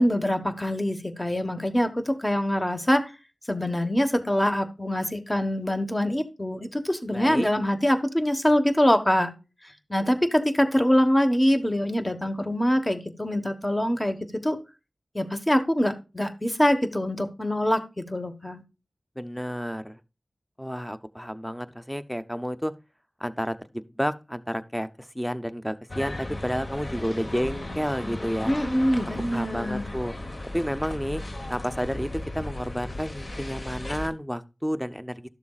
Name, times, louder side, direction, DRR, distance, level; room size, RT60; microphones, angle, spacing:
voice 1, 0.0-3.1 3.5-9.3 9.6-14.6 15.1-18.6 28.5-29.8, equal, 20° left, 1.3 m, -24 dB
voice 2, 7.1-7.5 19.2-20.0 20.6-22.7 23.2-24.9 25.1-28.5 29.3-30.1 30.5-31.2 31.5-35.3, equal, 5° left, 0.7 m, -31 dB
sound 1, 25.9-34.1, left 1 dB, 45° left, 1.2 m, -36 dB
12.5 x 6.9 x 2.4 m
wide cardioid pair, 50°, 0 cm